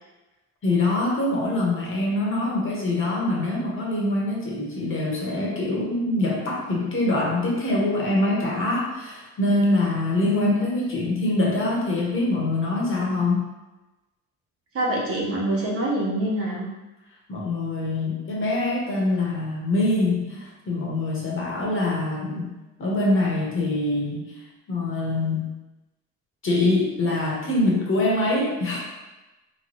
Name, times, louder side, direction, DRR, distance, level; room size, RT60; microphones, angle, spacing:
voice 1, 0.6-13.4 17.3-22.5 22.8-24.3 24.7-25.5 26.4-28.8, left 2 dB, 45° left, -3 dB, 1.2 m, -24 dB
voice 2, 10.2-10.7 13.1-13.2 14.7-16.7, equal, 50° right, -3 dB, 1.1 m, -26 dB
3.3 x 3.2 x 3.1 m, 1.1 s
cardioid pair, 90°, 30 cm